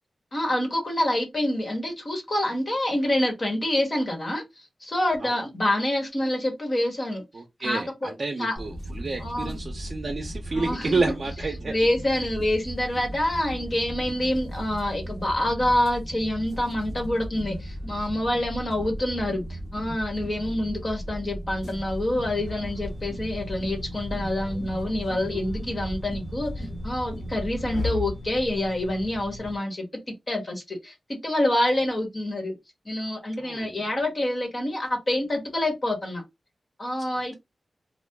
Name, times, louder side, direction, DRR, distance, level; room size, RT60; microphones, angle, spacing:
voice 1, 0.3-7.2 7.6-8.1 8.4-8.6 9.2-9.6 10.5-11.1 11.7-29.8 30.3-32.6 32.8-36.2 36.8-37.4, left 1 dB, 40° left, 1.2 m, -27 dB
voice 2, 7.3-11.7 12.1-12.2 33.4-33.8, right 3 dB, 50° right, 0.7 m, -30 dB
sound 1, 8.6-27.9, equal, 65° left, 1.1 m, -36 dB
sound 2, 22.1-29.6, left 2 dB, 80° left, 1.3 m, -38 dB
2.8 x 2.3 x 3.5 m
wide cardioid pair, 105°, 0 cm